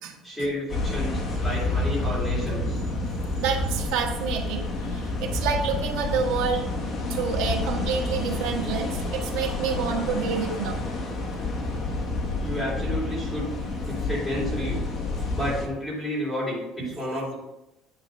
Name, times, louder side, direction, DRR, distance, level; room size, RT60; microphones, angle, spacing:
voice 1, 0.2-2.8 12.3-13.5 13.8-14.8 15.3-17.3, left 1 dB, 5° left, -8 dB, 3.4 m, -31 dB
sound 1, 0.7-15.7, left 2 dB, 30° left, 1.4 m, -29 dB
voice 2, 3.0-6.7 7.1-10.8 11.8-11.9 16.8-16.9, right 6 dB, 80° right, 2 dB, 1.5 m, -29 dB
9.7 x 4.5 x 5.4 m, 0.91 s
cardioid pair, 180°, 0 cm